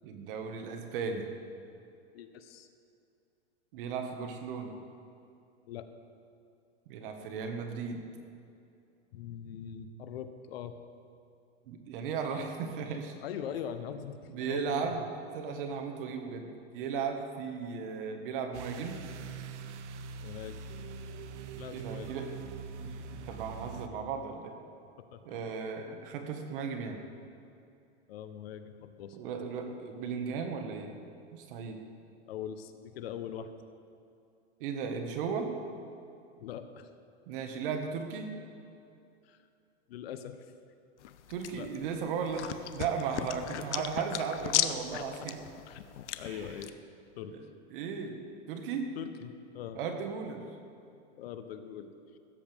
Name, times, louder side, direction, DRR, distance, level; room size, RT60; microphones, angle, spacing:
voice 1, 0.0-1.3 3.7-4.8 6.9-8.0 11.7-13.2 14.3-15.0 15.3-19.0 21.7-22.3 22.8-24.5 25.3-27.0 29.1-30.9 31.3-31.8 34.6-35.5 37.3-38.3 41.3-45.4 46.2-46.5 47.3-47.4 47.7-48.2 48.5-48.9 49.8-50.5, right 6 dB, 50° right, 4 dB, 1.7 m, -36 dB
voice 2, 2.1-2.7 5.7-5.9 9.1-10.8 13.2-15.1 20.2-20.6 21.6-22.2 25.1-25.2 28.1-29.2 32.3-33.5 36.4-36.9 39.2-39.4 39.9-40.5 41.5-41.7 43.2-43.3 43.6-43.9 44.7-45.1 45.7-45.9 46.2-46.7 47.2-47.4 48.9-49.8 51.2-52.2, left 9 dB, 60° left, 9 dB, 1.0 m, -42 dB
sound 1, 18.5-23.9, right 5 dB, 85° right, 0.9 m, -43 dB
sound 2, 41.0-46.7, left 11 dB, 80° left, 0.8 m, -36 dB
15.5 x 14.0 x 3.6 m, 2.6 s
supercardioid pair, 155°, 34 cm